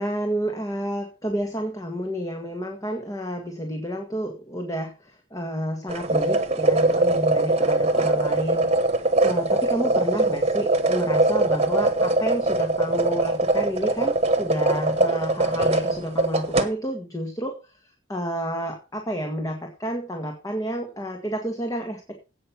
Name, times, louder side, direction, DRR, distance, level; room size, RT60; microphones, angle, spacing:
voice 1, 0.0-8.7 9.2-17.8 18.1-22.2, equal, 20° left, 3 dB, 1.7 m, -30 dB
sound 1, 5.9-16.7, right 2 dB, 35° right, 1.5 m, -22 dB
16.5 x 5.9 x 5.8 m, 0.32 s
head